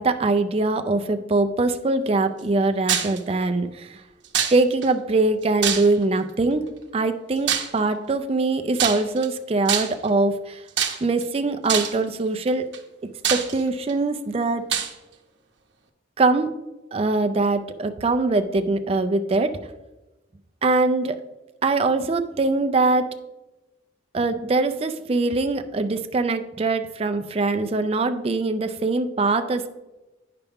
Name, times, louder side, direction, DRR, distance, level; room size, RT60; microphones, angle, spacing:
voice 1, 0.0-4.0 4.5-6.7 6.9-10.6 11.0-12.7 13.3-14.6 16.2-16.5 16.9-19.6 20.6-21.2 21.6-23.1 24.1-29.7, right 3 dB, 30° right, 7 dB, 0.4 m, -22 dB
sound 1, 2.9-3.2 4.3-4.9 5.6-6.2 7.5-7.8 8.8-9.3 9.7-10.1 10.8-11.2 11.7-12.0 12.7-12.8 13.2-13.9 14.7-14.9, right 8 dB, 75° right, 0.8 m, -24 dB
9.0 x 5.8 x 3.5 m, 1.1 s
head